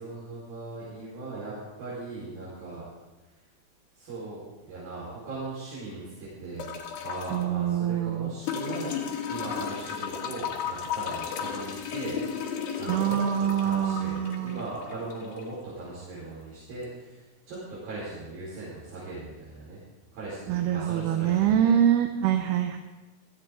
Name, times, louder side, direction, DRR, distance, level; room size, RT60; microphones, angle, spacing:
voice 1, 0.0-2.9 3.9-12.5 12.8-19.8 20.1-21.7, right 2 dB, 65° right, -9 dB, 6.2 m, -39 dB
sound 1, 6.6-7.4 8.5-15.5 16.8-16.9, left 7 dB, 85° left, 3.7 m, -34 dB
voice 2, 7.3-8.3 12.9-14.7 20.5-22.8, right 10 dB, 80° right, 6 dB, 2.7 m, -25 dB
18.5 x 14.5 x 3.7 m, 1.1 s
omnidirectional pair, 4.6 m